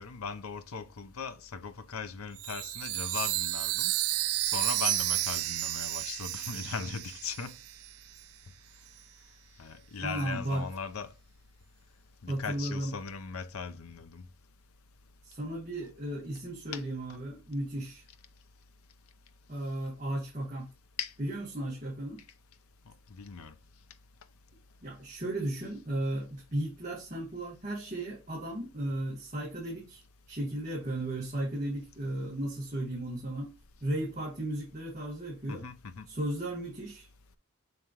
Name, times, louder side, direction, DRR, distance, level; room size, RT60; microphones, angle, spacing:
voice 1, 0.0-3.9 4.4-7.6 9.6-11.1 12.2-14.3 16.7-16.8 21.0-21.1 23.1-23.5 35.5-36.1, left 5 dB, 80° left, 0.7 m, -39 dB
Chime, 2.4-7.9, right 17 dB, 90° right, 0.4 m, -32 dB
voice 2, 10.0-10.6 12.3-12.9 15.2-18.0 19.5-20.7 21.2-22.2 24.8-30.0 30.3-33.5 33.8-35.6 36.1-37.1, right 1 dB, 35° right, 1.7 m, -35 dB
6.4 x 5.3 x 3.0 m
head